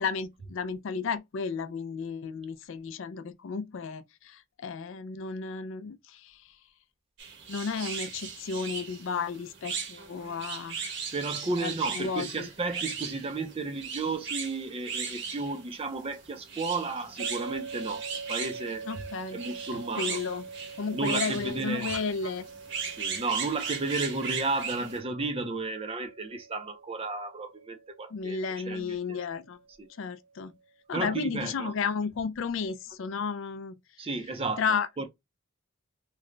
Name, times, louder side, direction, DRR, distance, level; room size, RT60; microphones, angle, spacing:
voice 1, 0.0-6.6 7.5-11.0 11.6-12.5 18.9-19.4 19.7-20.5 20.8-22.4 28.1-29.6 30.0-30.5 30.9-33.8 34.6-34.9, left 5 dB, 60° left, 0.4 m, -33 dB
sound 1, 7.2-25.0, right 6 dB, 55° right, 0.9 m, -37 dB
voice 2, 11.1-18.9 19.3-20.2 20.9-21.9 22.2-22.3 22.9-29.3 29.8-29.9 30.9-31.7 34.0-34.6 35.0-35.1, right 3 dB, 25° right, 0.5 m, -33 dB
sound 2, 17.2-30.3, right 4 dB, 80° right, 0.7 m, -45 dB
3.1 x 2.1 x 3.7 m
head